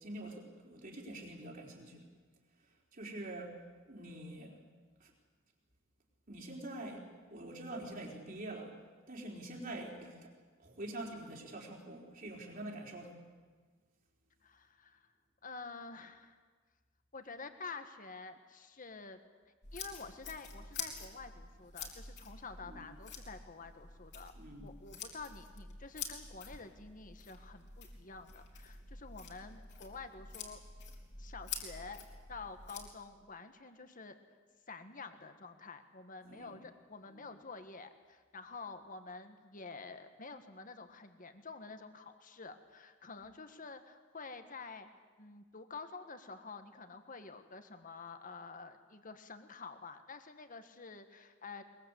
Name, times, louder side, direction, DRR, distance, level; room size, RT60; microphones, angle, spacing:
voice 1, 0.0-2.0 2.9-3.6 3.8-4.6 5.0-5.1 6.3-8.7 9.1-10.3 10.6-13.2 22.6-22.9 24.3-24.7 36.2-36.6 37.1-37.3, right 1 dB, 45° right, -1 dB, 4.4 m, -45 dB
voice 2, 14.4-15.1 15.4-16.4 17.1-19.2 19.7-24.3 24.6-30.6 31.2-32.0 32.3-34.2 34.7-44.9 45.2-51.6, left 4 dB, 40° left, 8 dB, 1.7 m, -49 dB
sound 1, 19.6-32.9, left 5 dB, 60° left, 3.6 m, -48 dB
22.0 x 22.0 x 8.4 m, 1.5 s
head